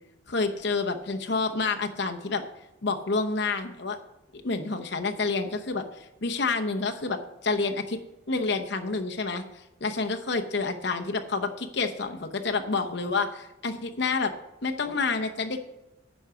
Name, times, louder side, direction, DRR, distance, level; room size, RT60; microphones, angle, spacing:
voice 1, 0.3-2.4 2.8-4.0 4.4-8.0 8.3-9.4 9.8-14.3 14.6-15.6, left 4 dB, 55° left, 5 dB, 0.8 m, -28 dB
10.5 x 4.9 x 6.8 m, 0.94 s
head